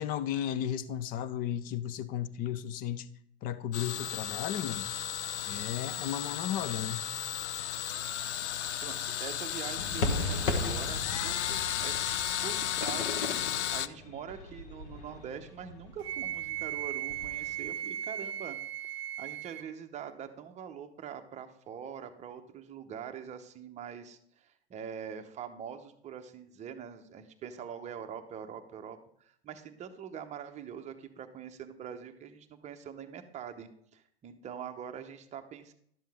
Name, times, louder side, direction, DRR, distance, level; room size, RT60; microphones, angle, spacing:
voice 1, 0.0-3.1 3.4-4.9 5.5-7.1, left 10 dB, 25° left, 0.5 m, -34 dB
sound 1, 3.7-13.9, left 10 dB, 85° left, 0.5 m, -34 dB
voice 2, 8.8-13.2 13.7-18.6 19.2-35.7, right 8 dB, 20° right, 0.8 m, -44 dB
sound 2, 9.8-17.7, left 2 dB, 50° left, 1.4 m, -37 dB
Wind instrument woodwind instrument, 16.0-19.7, right 12 dB, 70° right, 0.7 m, -37 dB
11.5 x 7.3 x 3.5 m
hypercardioid pair, 120°, 33 cm